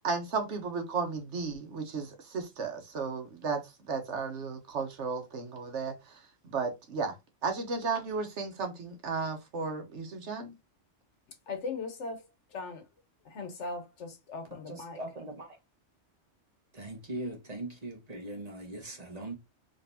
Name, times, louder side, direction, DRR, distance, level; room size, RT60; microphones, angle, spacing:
voice 1, 0.0-6.0 6.4-7.1 7.4-10.5, right 4 dB, 70° right, 1.3 m, -34 dB
voice 2, 11.5-12.2 12.5-12.8 13.2-15.0, left 3 dB, 70° left, 1.3 m, -39 dB
voice 3, 14.6-15.6 16.7-19.4, right 1 dB, 35° right, 1.3 m, -40 dB
3.8 x 3.3 x 2.6 m
omnidirectional pair, 1.3 m